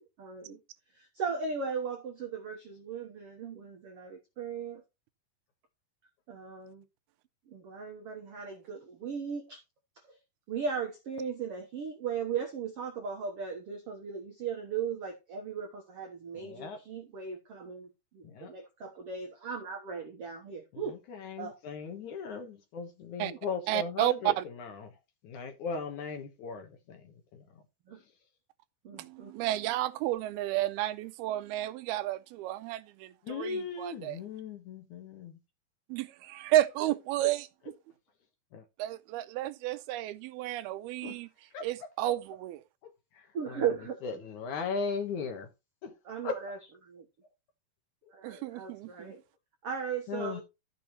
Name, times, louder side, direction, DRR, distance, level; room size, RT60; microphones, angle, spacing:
voice 1, 0.2-0.6 0.9-4.8 6.3-6.8 7.5-9.6 9.9-10.2 10.5-21.0 21.4-21.6 23.3-23.4 27.9-28.0 28.8-29.3 43.3-44.0 46.0-47.1 48.1-49.2 49.6-50.4, right 6 dB, 70° right, 1.4 m, -37 dB
voice 2, 16.3-16.8 18.2-18.5 20.7-25.0 25.2-27.6 33.2-35.4 37.2-37.3 38.5-38.6 41.0-41.2 41.5-42.1 42.8-43.7 44.0-45.5 45.8-46.0 46.2-46.4 50.1-50.4, left 5 dB, 65° left, 2.3 m, -38 dB
voice 3, 23.7-24.4 29.0-34.2 35.9-37.5 38.8-41.3 41.6-42.6 48.2-49.1, right 14 dB, 85° right, 2.6 m, -32 dB
13.0 x 6.9 x 3.0 m
omnidirectional pair, 4.5 m